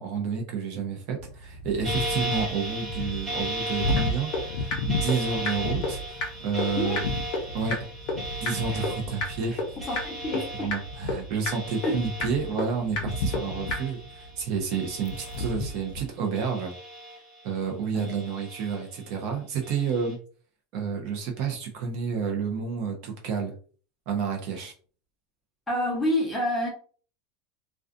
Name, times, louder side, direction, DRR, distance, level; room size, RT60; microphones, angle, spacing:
voice 1, 0.0-7.0 7.5-7.9 8.4-10.0 10.6-16.7 17.4-20.2 20.7-23.5 24.1-24.7, right 5 dB, 50° right, 2 dB, 0.6 m, -30 dB
sound 1, 1.2-16.1, left 1 dB, 70° left, 0.3 m, -35 dB
sound 2, 1.8-14.4 14.7-15.9 16.3-17.6 18.0-19.0 19.6-20.1, right 1 dB, 25° right, 0.8 m, -37 dB
sound 3, 4.0-4.1 4.3-4.4 4.7-4.8 5.1-5.2 5.5-5.6 5.8-5.9 6.2-6.3 6.6-6.7 7.0-7.1 7.3-7.4 7.7-7.8 8.1-8.2 8.5-8.6 8.8-8.9 9.2-9.3 9.6-9.7 10.0-10.1 10.3-10.4 10.7-10.8 11.1-11.2 11.5-11.6 11.8-11.9 12.2-12.3 12.6-12.7 13.0-13.1 13.3-13.4 13.7-13.8, left 3 dB, 40° left, 0.8 m, -27 dB
voice 2, 9.8-10.7 11.8-12.0 17.9-18.1 25.7-26.7, left 1 dB, 5° left, -2 dB, 0.8 m, -28 dB
2.5 x 2.3 x 2.4 m, 0.41 s
supercardioid pair, 160°, 0 cm